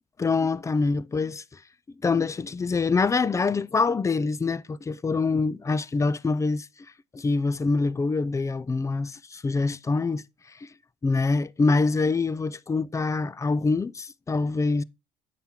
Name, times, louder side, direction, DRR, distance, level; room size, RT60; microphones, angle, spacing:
voice 1, 0.2-1.6 2.0-6.7 7.1-10.7 11.0-14.8, left 4 dB, 20° left, 0.4 m, -25 dB
9.0 x 5.8 x 3.7 m
cardioid pair, 110°, 17 cm